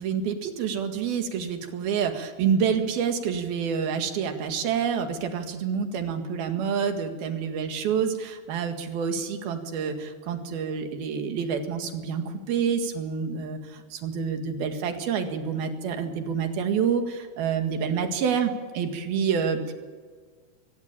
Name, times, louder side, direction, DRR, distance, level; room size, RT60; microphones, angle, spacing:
voice 1, 0.0-19.7, right 7 dB, 70° right, 6 dB, 3.7 m, -28 dB
22.5 x 17.0 x 8.8 m, 1.5 s
omnidirectional pair, 4.5 m